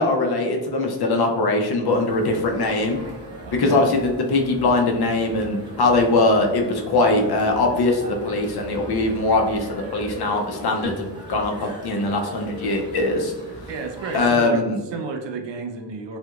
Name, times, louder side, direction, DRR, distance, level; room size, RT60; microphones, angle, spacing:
voice 1, 0.0-3.0 3.5-13.3 14.1-14.8, left 2 dB, 60° left, 3 dB, 0.6 m, -21 dB
sound 1, 1.9-14.3, equal, 10° right, 0.8 m, -39 dB
voice 2, 3.4-3.8 13.7-14.6 14.9-16.2, right 4 dB, 80° right, 5 dB, 0.6 m, -31 dB
3.3 x 3.0 x 2.3 m, 1.2 s
wide cardioid pair, 110°, 43 cm